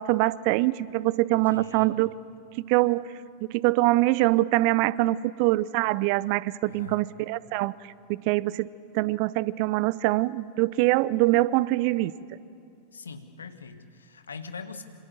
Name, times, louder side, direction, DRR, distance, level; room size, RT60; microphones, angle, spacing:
voice 1, 0.0-2.1 2.7-3.1 3.5-7.7 8.1-8.7 8.9-12.1, right 18 dB, 45° right, 20 dB, 0.6 m, -24 dB
voice 2, 1.3-2.0 6.6-7.1 12.9-14.9, left 5 dB, 70° left, 9 dB, 1.6 m, -42 dB
27.0 x 26.0 x 7.5 m, 2.4 s
figure-of-eight pair, 90°, 0 cm